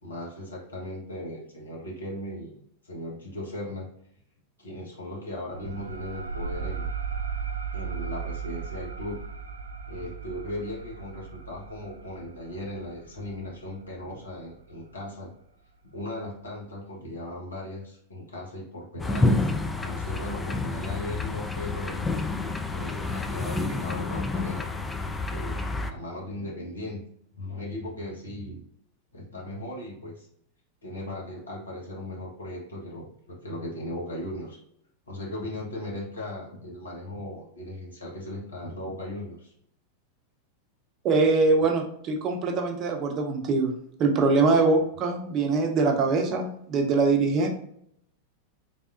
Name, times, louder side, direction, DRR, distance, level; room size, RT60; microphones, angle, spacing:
voice 1, 0.0-2.6 2.8-3.9 4.6-6.9 7.7-9.2 9.9-15.3 15.9-22.0 22.7-24.6 25.0-27.0 27.3-28.6 29.1-30.3 30.8-34.6 35.1-39.5, left 1 dB, 75° left, -3 dB, 1.3 m, -37 dB
sound 1, 5.5-14.7, right 6 dB, 70° right, 0.3 m, -36 dB
sound 2, 19.0-25.9, left 3 dB, 10° left, 0.4 m, -29 dB
voice 2, 41.0-43.7 44.0-47.5, right 3 dB, 35° right, 3 dB, 0.7 m, -23 dB
4.1 x 3.4 x 2.6 m, 0.69 s
figure-of-eight pair, 90°, 0 cm